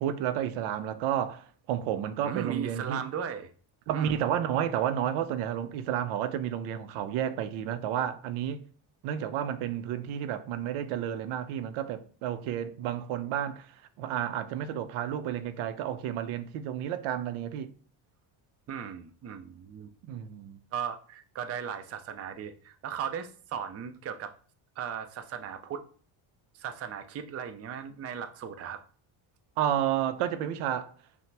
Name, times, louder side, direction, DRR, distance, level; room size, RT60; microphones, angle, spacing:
voice 1, 0.0-3.0 3.9-8.6 9.0-13.7 14.0-17.7 20.1-20.6 29.6-30.9, right 10 dB, 85° right, 0.6 m, -31 dB
voice 2, 2.2-3.5 3.9-4.2 18.7-19.9 20.7-24.3 24.8-25.8 26.5-28.8, right 8 dB, 35° right, 0.4 m, -37 dB
5.6 x 2.1 x 3.3 m
cardioid pair, 125°, 48 cm